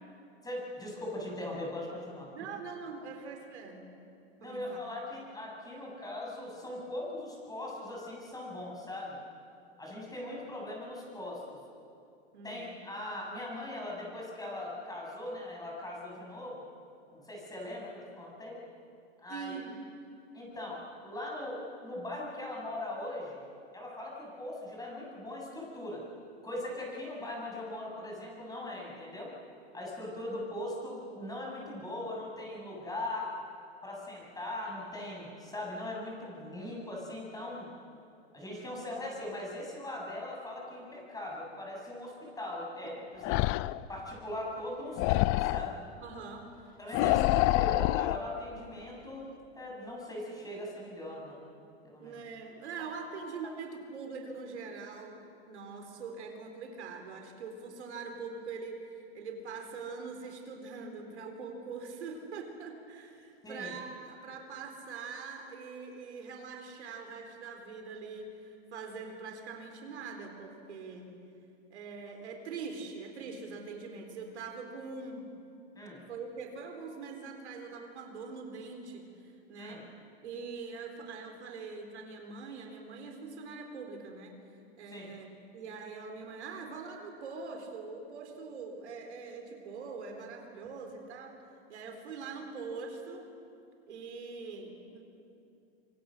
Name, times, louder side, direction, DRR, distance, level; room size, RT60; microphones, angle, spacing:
voice 1, 0.4-2.5 4.4-9.2 9.8-11.6 12.4-16.6 17.1-18.6 19.2-19.5 20.3-23.4 23.7-26.0 26.4-29.3 29.7-33.3 33.8-37.7 38.3-43.5 43.9-45.8 46.8-49.3 49.6-51.4 51.8-52.2 52.8-52.9 63.4-63.7 75.7-76.0 79.6-79.8 84.9-85.1, left 1 dB, 10° left, -3 dB, 7.7 m, -40 dB
voice 2, 2.3-3.8 4.4-4.8 12.3-12.7 19.3-19.8 38.5-38.8 42.8-42.9 46.0-47.2 52.0-55.2 55.5-71.0 71.7-75.2 76.1-79.1 79.5-79.9 80.2-84.3 84.8-91.4 91.7-93.3 93.9-95.0, right 4 dB, 85° right, 3 dB, 4.1 m, -43 dB
sound 1, 43.2-43.9 45.0-45.7 46.9-48.2, left 19 dB, 40° left, 0.6 m, -26 dB
25.0 x 24.5 x 6.6 m, 2.6 s
hypercardioid pair, 115°, 33 cm